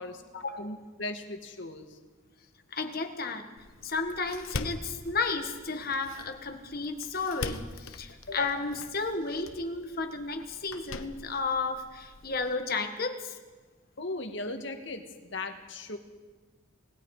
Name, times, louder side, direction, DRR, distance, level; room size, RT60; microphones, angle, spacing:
voice 1, 0.0-2.0 14.0-16.0, left 2 dB, 60° left, 5 dB, 2.0 m, -38 dB
voice 2, 2.7-3.5 3.8-13.4, left 4 dB, 45° left, 6 dB, 1.6 m, -33 dB
Door, 3.6-12.6, left 3 dB, 80° left, 1.1 m, -43 dB
29.5 x 20.0 x 5.0 m, 1.4 s
head